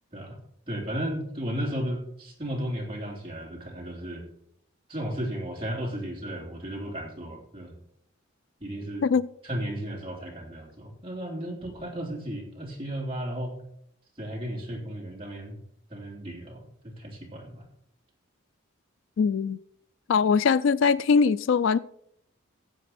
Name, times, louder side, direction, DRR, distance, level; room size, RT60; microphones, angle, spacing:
voice 1, 0.7-4.2 4.9-7.7 8.6-9.0 9.4-13.6 14.2-15.5 15.9-17.6, equal, 25° right, 3.2 m, -34 dB
voice 2, 19.2-19.6 20.1-21.8, left 5 dB, 70° left, 0.3 m, -22 dB
15.0 x 7.9 x 4.2 m
head